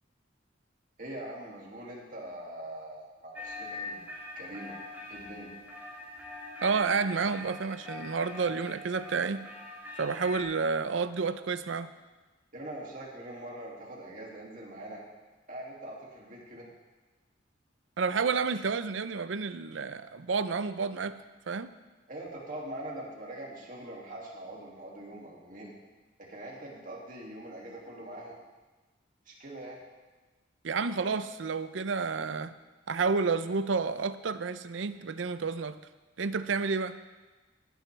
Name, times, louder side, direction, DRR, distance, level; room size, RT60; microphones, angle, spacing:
voice 1, 1.0-4.0 4.4-4.8 5.1-5.5 12.5-15.0 15.5-16.7 22.1-25.7 26.2-28.4 29.3-29.8, right 1 dB, 45° right, -3 dB, 2.4 m, -43 dB
sound 1, 3.3-10.4, left 3 dB, 10° right, 1.9 m, -43 dB
voice 2, 6.6-9.4 10.0-11.9 18.0-21.2 21.5-21.7 30.6-32.5 32.9-35.8 36.2-37.0, right 5 dB, 75° right, 13 dB, 0.5 m, -30 dB
17.5 x 9.1 x 3.4 m, 1.2 s
head